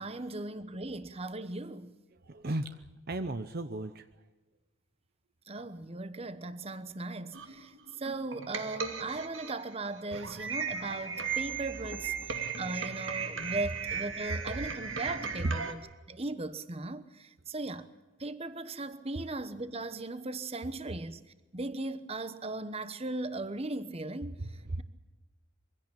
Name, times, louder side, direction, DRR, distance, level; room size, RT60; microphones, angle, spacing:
voice 1, 0.0-1.9 5.5-15.8 16.1-17.9 18.2-21.2 21.5-24.3, right 2 dB, 30° right, 1.1 m, -38 dB
voice 2, 2.1-4.1 12.2-12.6 14.6-14.7 15.4-15.5 24.4-24.8, right 2 dB, 50° right, 0.8 m, -36 dB
sound 1, 7.3-15.7, right 6 dB, 70° right, 2.3 m, -36 dB
23.5 x 16.5 x 8.9 m
head